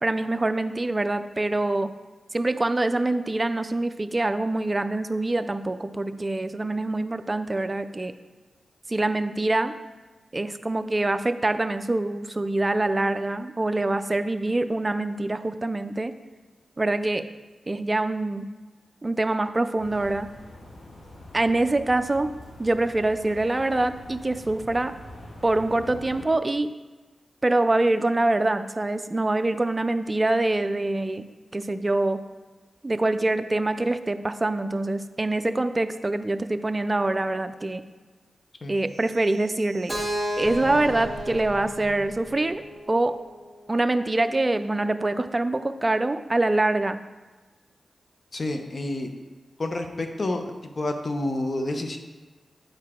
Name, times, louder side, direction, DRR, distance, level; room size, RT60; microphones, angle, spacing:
voice 1, 0.0-1.9 2.3-8.1 8.9-9.7 10.3-16.1 16.8-17.2 17.7-18.5 19.0-20.3 21.3-22.3 22.6-24.9 25.4-26.7 27.4-31.2 31.5-32.2 32.8-37.8 38.7-40.0 40.4-42.6 42.9-43.2 43.7-47.0, right 2 dB, 30° right, 10 dB, 0.4 m, -25 dB
sound 1, 19.8-26.3, left 1 dB, 80° left, 1.3 m, -44 dB
sound 2, 38.9-43.2, right 3 dB, 75° right, 0.6 m, -43 dB
Keyboard (musical), 39.9-43.8, equal, 5° left, 2.1 m, -34 dB
voice 2, 48.3-49.1 49.6-50.4 50.8-52.0, left 2 dB, 50° left, 5 dB, 0.8 m, -28 dB
8.8 x 4.8 x 3.7 m, 1.2 s
cardioid pair, 60°, 0 cm